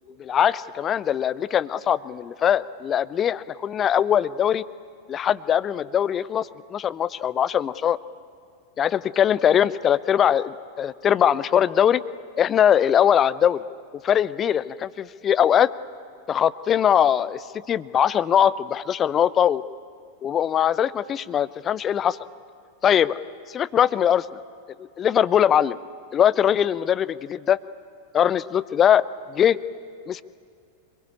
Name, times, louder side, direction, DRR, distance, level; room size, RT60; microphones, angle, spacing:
voice 1, 0.2-4.6 5.1-8.0 8.8-12.0 12.4-13.6 14.0-15.7 16.3-19.6 20.2-22.2 22.8-23.2 23.5-24.2 25.0-25.8 26.1-27.6 28.1-29.6 30.1-30.2, left 9 dB, 25° left, 18 dB, 0.7 m, -21 dB
26.0 x 21.5 x 9.8 m, 2.3 s
figure-of-eight pair, 90°, 0 cm